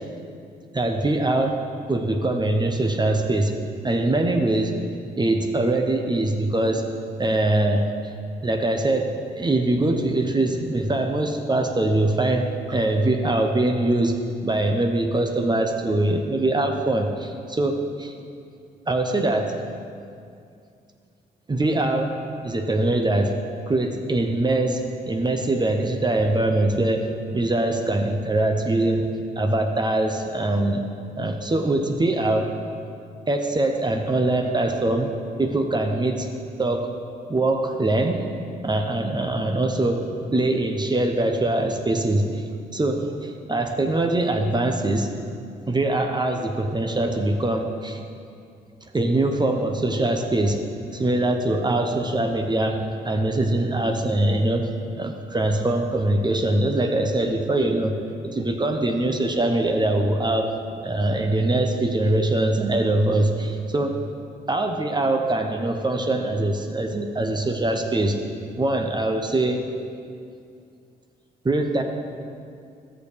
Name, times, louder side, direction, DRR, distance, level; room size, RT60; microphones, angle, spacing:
voice 1, 0.7-1.6 1.9-3.6 3.8-4.8 5.2-6.8 7.2-7.9 8.4-14.2 14.4-18.1 18.9-19.6 21.5-22.1 22.4-23.4 23.7-30.8 31.2-32.5 33.3-35.1 35.4-36.3 36.6-36.9 37.3-38.3 38.6-40.0 40.3-42.4 42.7-45.1 45.7-48.0 48.9-50.6 50.9-54.7 55.0-60.5 60.8-63.9 64.5-68.2 68.6-69.6 71.4-71.8, right 2 dB, 25° right, 4 dB, 0.9 m, -23 dB
13.5 x 6.6 x 3.4 m, 2.4 s
supercardioid pair, 60°, 19 cm